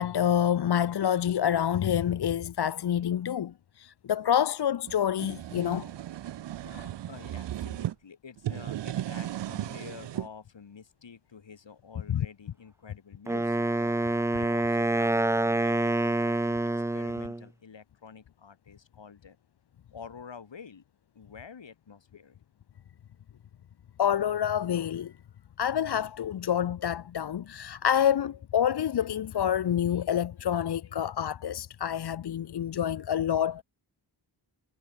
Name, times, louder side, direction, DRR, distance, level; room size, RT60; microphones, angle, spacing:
voice 1, 0.0-5.9 6.7-6.9 12.1-12.3 24.0-25.1 25.6-33.6, left 9 dB, 65° left, 0.7 m, -27 dB
sound 1, 4.9-7.9 8.4-10.3, right 12 dB, 75° right, 0.5 m, -36 dB
voice 2, 6.6-19.4 19.9-20.8 21.1-22.4, left 6 dB, 80° left, 4.1 m, -48 dB
Wind instrument woodwind instrument, 13.3-17.4, right 2 dB, 5° right, 0.3 m, -27 dB
wide cardioid pair, 105°, 43 cm